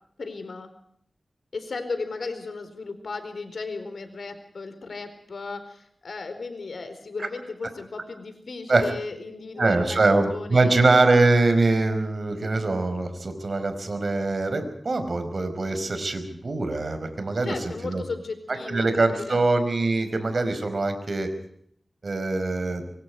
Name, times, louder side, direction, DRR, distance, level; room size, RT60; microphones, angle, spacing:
voice 1, 0.2-0.7 1.5-10.9 17.4-19.5, left 4 dB, 85° left, 9 dB, 4.5 m, -35 dB
voice 2, 9.6-17.5 17.8-18.0 18.7-21.3 22.0-22.8, right 3 dB, 60° right, 9 dB, 5.0 m, -23 dB
25.5 x 24.0 x 4.8 m, 0.66 s
wide cardioid pair, 70°, 0 cm